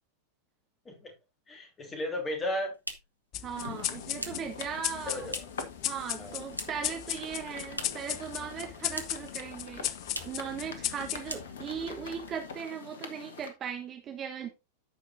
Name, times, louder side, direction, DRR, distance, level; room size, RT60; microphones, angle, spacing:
voice 1, 1.5-2.7 5.1-5.4 6.2-6.4, left 1 dB, 20° left, 3.2 m, -34 dB
sound 1, 2.3-5.7 6.0-7.0 7.2-8.2 8.4-9.4 9.6-9.7 10.0-10.5 10.8-11.0 11.2-11.9, equal, 90° right, 0.9 m, -42 dB
sound 2, 3.3-12.2, left 13 dB, 40° left, 0.5 m, -37 dB
voice 2, 3.4-5.3 5.8-9.9 10.2-14.5, right 7 dB, 30° right, 1.3 m, -38 dB
sound 3, 3.5-13.5, left 6 dB, 65° left, 1.1 m, -44 dB
14.0 x 5.2 x 2.6 m
figure-of-eight pair, 90°, 0 cm